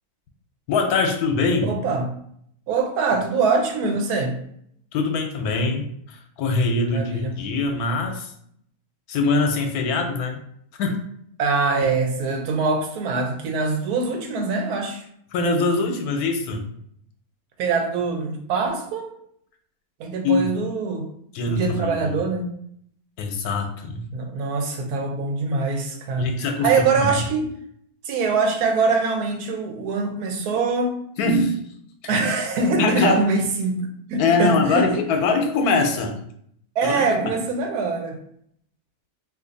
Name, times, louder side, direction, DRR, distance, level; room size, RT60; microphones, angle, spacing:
voice 1, 0.7-1.8 4.9-8.3 9.1-10.4 10.8-10.9 11.8-11.9 15.3-16.7 20.2-20.5 21.3-22.2 23.2-24.1 26.1-26.7 27.0-27.1 31.2-31.6 32.0-32.1 32.8-33.3 34.2-36.1 36.8-37.3, left 3 dB, 85° left, 4 dB, 1.1 m, -23 dB
voice 2, 1.6-2.1 2.7-4.4 6.8-7.4 11.4-15.0 17.6-19.1 20.0-21.1 21.5-22.5 24.1-26.3 26.6-27.5 28.0-31.0 32.1-34.9 36.8-38.1, right 4 dB, 90° right, 3 dB, 1.2 m, -23 dB
2.7 x 2.6 x 3.8 m, 0.68 s
omnidirectional pair, 1.6 m